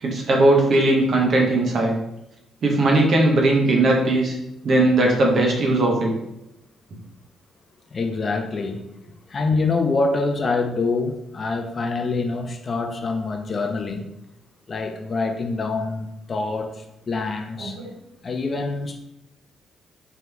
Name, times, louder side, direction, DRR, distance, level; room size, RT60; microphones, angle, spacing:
voice 1, 0.0-1.9 2.6-4.3 4.6-6.1 17.6-17.9, right 2 dB, 50° right, 0 dB, 0.9 m, -18 dB
voice 2, 7.9-8.8 9.3-14.1 14.7-17.8 18.2-19.0, left 3 dB, 35° left, 5 dB, 0.4 m, -25 dB
3.7 x 3.0 x 3.3 m, 0.85 s
cardioid pair, 125°, 0 cm